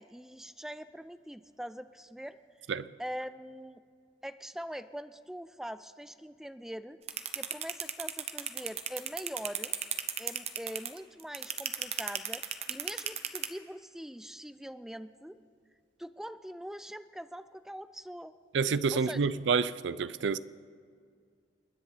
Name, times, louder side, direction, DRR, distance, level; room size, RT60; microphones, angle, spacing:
voice 1, 0.0-2.4 3.0-3.8 4.2-7.0 7.3-9.7 10.2-15.4 16.0-18.3 18.9-19.2, equal, 5° right, 0.4 m, -43 dB
sound 1, 7.1-13.5, right 9 dB, 35° right, 0.7 m, -33 dB
voice 2, 18.5-20.4, right 5 dB, 85° right, 0.4 m, -28 dB
29.0 x 10.0 x 4.0 m
head